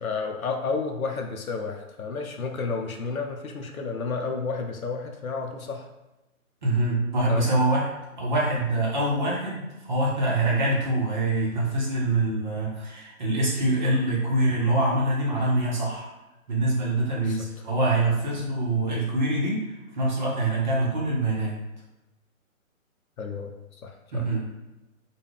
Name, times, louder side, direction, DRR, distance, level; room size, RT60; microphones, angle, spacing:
voice 1, 0.0-5.9 7.3-7.5 17.2-17.5 23.2-23.5 23.8-24.3, left 4 dB, 80° left, 3 dB, 0.5 m, -31 dB
voice 2, 6.6-7.9 8.2-16.1 16.5-21.6 24.1-24.5, right 2 dB, 35° right, -4 dB, 0.6 m, -25 dB
2.3 x 2.1 x 3.4 m, 1.0 s
figure-of-eight pair, 135°, 42 cm